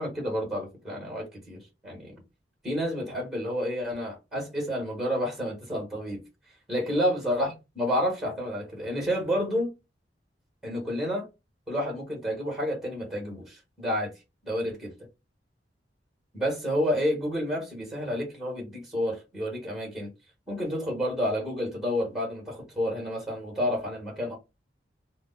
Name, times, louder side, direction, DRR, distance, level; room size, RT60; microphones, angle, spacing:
voice 1, 0.0-2.1 2.6-6.2 6.7-9.7 10.6-11.3 11.7-14.1 14.4-14.9 16.3-20.1 20.5-24.4, equal, ahead, 1.4 m, -30 dB
3.3 x 2.0 x 3.8 m
head